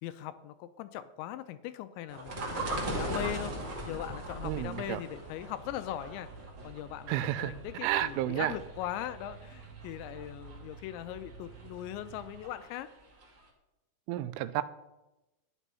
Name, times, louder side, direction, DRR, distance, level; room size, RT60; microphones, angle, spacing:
voice 1, 0.0-6.3 6.6-12.9, left 12 dB, 80° left, 12 dB, 2.8 m, -40 dB
sound 1, 2.1-12.9 13.2-13.3, right 1 dB, 40° right, 1.8 m, -40 dB
sound 2, 2.9-12.4, right 6 dB, 70° right, 2.6 m, -51 dB
voice 2, 4.4-5.0 7.1-7.5 7.8-8.5 14.1-14.6, right 14 dB, 90° right, 14 dB, 3.2 m, -31 dB
12.5 x 10.0 x 5.6 m, 0.97 s
omnidirectional pair, 5.5 m